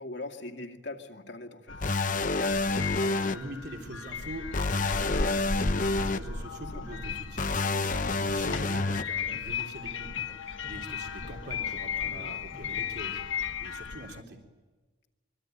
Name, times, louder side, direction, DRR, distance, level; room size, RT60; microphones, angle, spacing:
voice 1, 0.0-1.8 6.7-7.0 12.1-12.3, left 2 dB, 65° left, 4 dB, 2.4 m, -41 dB
sound 1, 1.7-14.2, left 5 dB, 90° left, 1.3 m, -36 dB
sound 2, 1.8-3.3 4.5-6.2 7.4-9.0, left 3 dB, 40° left, 0.9 m, -28 dB
voice 2, 3.0-14.4, right 1 dB, 55° right, 2 dB, 3.5 m, -44 dB
sound 3, 6.4-6.6 6.9-8.0 8.3-8.5 8.7-9.9 10.2-10.4 10.6-11.8 12.0-12.3 12.5-13.1, equal, 5° left, 1.6 m, -52 dB
25.0 x 24.0 x 9.3 m, 1.3 s
head